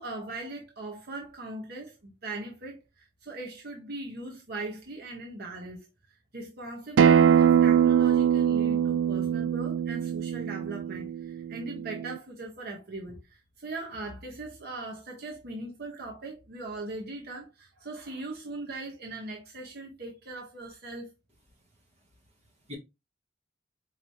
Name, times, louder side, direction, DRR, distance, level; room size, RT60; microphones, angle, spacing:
voice 1, 0.0-21.1, right 2 dB, 55° right, 1.0 m, -40 dB
Acoustic guitar, 7.0-12.2, right 8 dB, 75° right, 0.3 m, -23 dB
voice 2, 22.0-22.8, left 2 dB, 35° right, 1.2 m, -48 dB
4.9 x 2.9 x 2.7 m
head